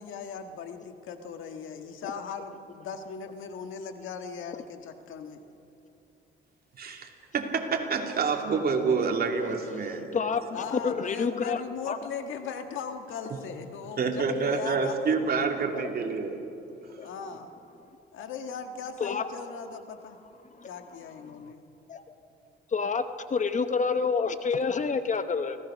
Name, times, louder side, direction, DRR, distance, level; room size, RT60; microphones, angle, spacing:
voice 1, 0.0-5.4 10.5-14.9 17.0-17.5 18.1-20.2 20.6-21.6, left 6 dB, 80° left, 7 dB, 1.6 m, -39 dB
voice 2, 6.8-10.2 13.3-13.4 14.0-16.4, right 5 dB, 50° right, 3 dB, 2.7 m, -28 dB
voice 3, 10.1-12.0 15.7-15.9 17.0-17.1 19.0-19.3 20.4-20.7 21.2-21.5 21.9-22.0 22.7-23.0 23.3-25.6, left 5 dB, 40° left, 10 dB, 1.0 m, -29 dB
25.0 x 17.0 x 6.4 m, 2.8 s
cardioid pair, 90°, 20 cm